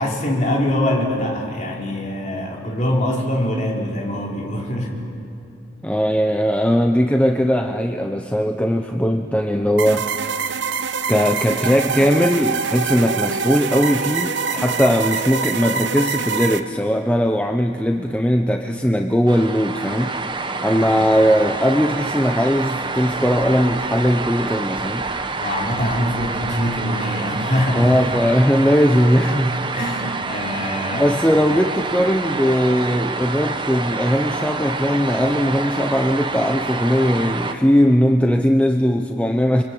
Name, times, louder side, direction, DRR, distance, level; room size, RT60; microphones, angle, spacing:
voice 1, 0.0-5.0 20.9-21.1 25.4-28.2 29.7-31.1, left 1 dB, 35° left, -1 dB, 4.3 m, -23 dB
voice 2, 5.8-10.1 11.1-20.1 20.6-25.1 27.7-29.7 30.9-39.6, equal, 5° left, 4 dB, 0.7 m, -19 dB
sound 1, 9.8-16.6, right 5 dB, 65° right, 1.0 m, -24 dB
sound 2, 19.3-37.5, right 3 dB, 25° right, 1.1 m, -27 dB
28.5 x 24.5 x 8.6 m, 2.6 s
head